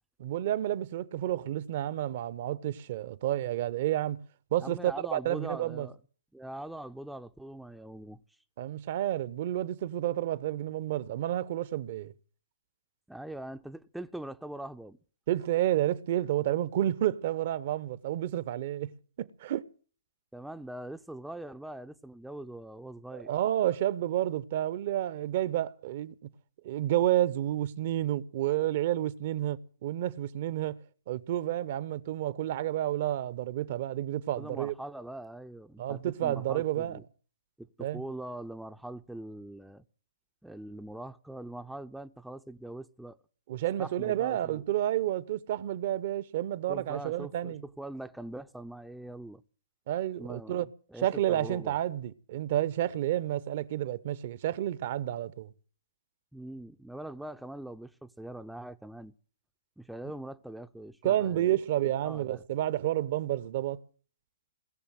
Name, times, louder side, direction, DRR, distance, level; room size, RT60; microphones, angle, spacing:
voice 1, 0.2-4.2 4.5-5.9 8.6-12.1 15.3-18.9 19.2-19.6 23.1-26.1 26.6-30.8 31.1-34.7 35.8-37.0 37.8-38.0 43.5-47.6 49.9-50.7 51.0-55.5 61.0-63.8, right 13 dB, 45° right, 0.9 m, -30 dB
voice 2, 4.6-6.0 6.3-8.2 13.1-15.0 20.3-23.3 34.3-37.0 37.6-39.8 40.4-43.2 43.8-44.6 46.7-49.4 50.2-51.8 56.3-59.1 59.8-61.6 62.0-62.4, right 1 dB, ahead, 0.7 m, -42 dB
21.0 x 7.1 x 9.2 m
figure-of-eight pair, 125°, 0 cm